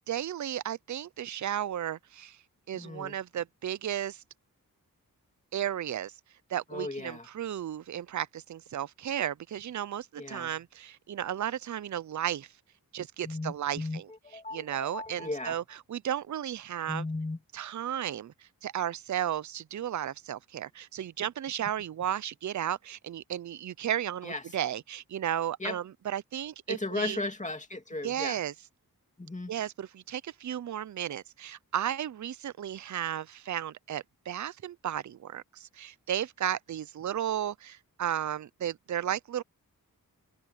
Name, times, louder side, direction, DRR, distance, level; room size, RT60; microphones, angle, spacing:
voice 1, 0.1-2.4 2.7-4.2 5.5-6.1 6.5-12.5 12.9-14.1 14.5-15.6 15.9-17.0 17.5-18.3 18.6-27.2 28.0-28.5 29.5-39.4, right 10 dB, 55° right, 0.5 m, -34 dB
voice 2, 2.7-3.2 6.7-7.3 10.2-10.5 13.2-15.6 16.9-17.4 24.2-24.4 25.6-25.8 26.7-28.4 29.2-29.5, left 2 dB, 20° left, 2.5 m, -36 dB
wide cardioid pair, 85°, 35 cm